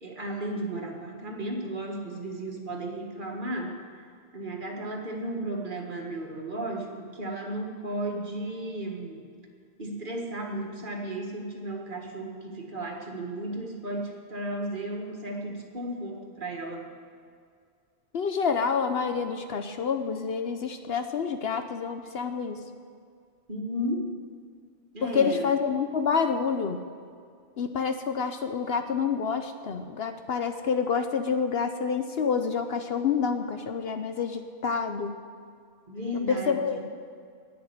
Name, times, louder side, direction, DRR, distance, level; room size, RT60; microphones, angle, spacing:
voice 1, 0.0-4.0 4.3-9.3 9.8-16.9 23.5-24.1 24.9-25.5 35.9-36.8, right 1 dB, 40° right, 0 dB, 1.8 m, -34 dB
voice 2, 18.1-22.6 25.0-26.8 27.6-35.2 36.3-36.8, left 6 dB, 60° left, 7 dB, 0.9 m, -28 dB
11.0 x 8.8 x 9.6 m, 2.2 s
omnidirectional pair, 1.3 m